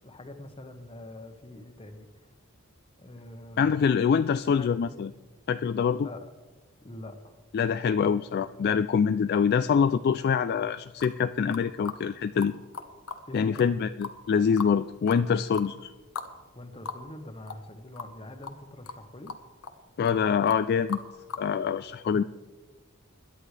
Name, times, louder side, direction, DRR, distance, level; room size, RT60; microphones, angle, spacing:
voice 1, 0.0-2.3 3.0-3.7 4.5-4.9 5.9-6.2 6.8-7.4 13.3-13.7 16.5-19.3, left 1 dB, 25° left, 7 dB, 1.1 m, -44 dB
voice 2, 3.6-5.1 5.5-6.1 7.5-12.5 13.3-15.9 20.0-21.0 21.4-22.2, left 6 dB, 50° left, 11 dB, 0.3 m, -25 dB
sound 1, 11.0-11.2 11.5-12.0 12.4-12.5 12.7-13.2 13.5-13.6 14.0-14.8 15.1-15.2 15.5-15.7 16.2-16.3 16.6-16.7 16.9-17.0 17.5-17.7 18.0-18.1 18.4-18.6 18.9-19.0 19.3-19.8 20.0-20.2 20.5-20.6 20.9-21.5, left 5 dB, 90° left, 1.1 m, -38 dB
21.0 x 11.0 x 3.3 m, 1.3 s
head